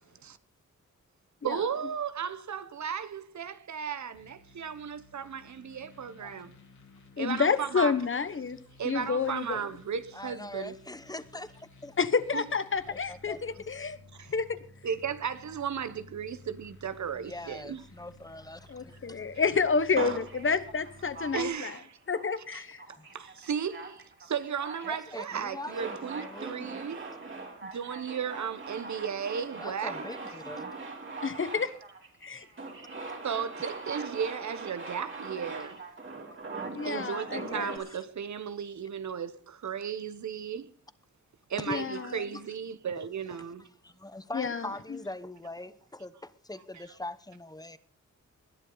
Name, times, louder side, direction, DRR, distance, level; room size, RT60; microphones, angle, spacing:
voice 1, 1.4-6.5 7.2-7.9 8.8-10.8 12.3-12.4 14.2-14.3 14.8-17.8 21.3-22.0 22.5-22.6 23.1-27.0 27.6-30.1 33.2-35.8 36.8-40.7 41.5-43.7 46.7-46.8, right 7 dB, 65° right, 1.0 m, -35 dB
sound 1, 4.1-21.5, left 2 dB, 65° left, 3.9 m, -55 dB
voice 2, 7.2-8.6 8.8-9.6 12.0-14.0 14.3-14.6 18.7-21.8 22.1-22.8 31.2-31.7 32.2-32.5 36.7-37.8 41.7-42.2 44.3-44.7, left 5 dB, 40° left, 1.1 m, -29 dB
voice 3, 10.1-12.0 12.9-13.9 17.1-19.3 23.0-23.1 24.8-26.9 29.6-30.7 33.1-33.2 37.9-38.0 41.6-41.9 43.8-47.8, left 2 dB, 10° left, 1.0 m, -42 dB
Male speech man speaking, 20.0-21.9 22.1-22.5 22.8-37.8, right 3 dB, 40° right, 3.4 m, -41 dB
20.0 x 11.0 x 4.0 m
wide cardioid pair, 115°, 31 cm